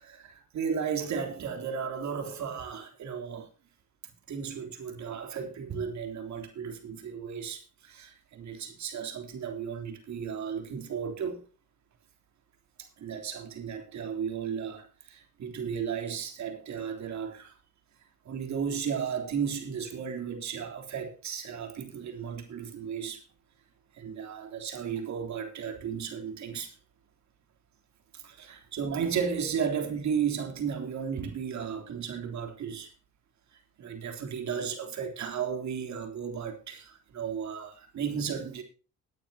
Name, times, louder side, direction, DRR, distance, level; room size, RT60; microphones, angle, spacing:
voice 1, 0.0-3.5 4.0-11.4 12.8-17.6 18.3-23.2 23.9-26.7 28.1-32.9 33.8-38.6, right 7 dB, 65° right, 3.5 m, -34 dB
19.5 x 9.4 x 2.9 m
cardioid pair, 90°, 30 cm